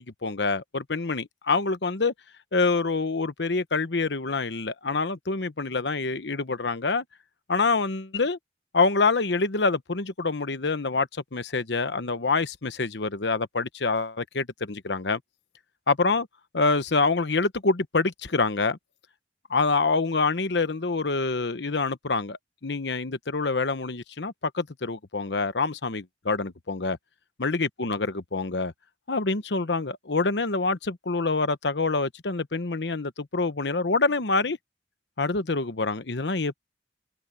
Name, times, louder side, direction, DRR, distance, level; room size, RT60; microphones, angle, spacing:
voice 1, 0.0-2.1 2.5-7.0 7.5-8.4 8.7-15.2 15.9-16.3 16.5-18.8 19.5-27.0 27.4-28.7 29.1-34.6 35.2-36.6, left 3 dB, 80° left, 1.0 m, -26 dB
head